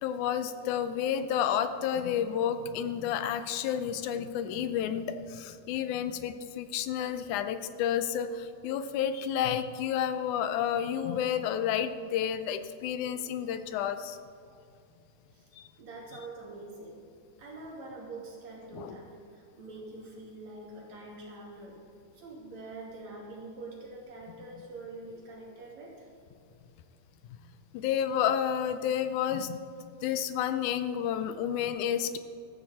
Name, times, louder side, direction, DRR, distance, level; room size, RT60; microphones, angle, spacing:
voice 1, 0.0-14.2 15.6-15.7 18.7-19.0 27.7-29.6 30.0-32.2, left 9 dB, 90° left, 10 dB, 2.2 m, -30 dB
voice 2, 15.8-17.0 17.4-21.8 22.1-26.1, right 2 dB, 65° right, -3 dB, 3.8 m, -45 dB
14.0 x 13.5 x 4.2 m, 2.4 s
omnidirectional pair, 3.4 m